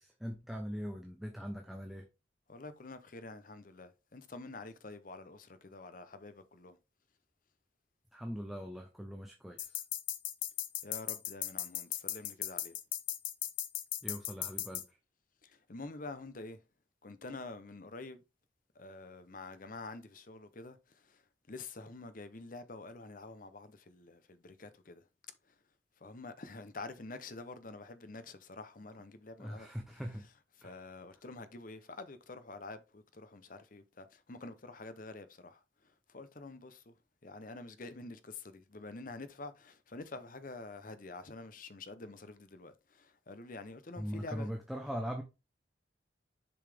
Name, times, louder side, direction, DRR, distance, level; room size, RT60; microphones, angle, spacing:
voice 1, 0.0-2.1 8.1-9.8 14.0-14.8 29.4-30.2 30.6-30.8 44.0-45.2, equal, ahead, 0.8 m, -41 dB
voice 2, 2.5-6.8 10.8-12.8 15.4-16.6 17.0-18.2 18.8-21.2 21.5-25.0 26.0-29.7 30.6-35.6 36.1-36.9 37.2-44.5, left 3 dB, 45° left, 0.8 m, -47 dB
sound 1, 9.6-14.8, left 12 dB, 85° left, 0.8 m, -37 dB
6.9 x 5.5 x 3.5 m
head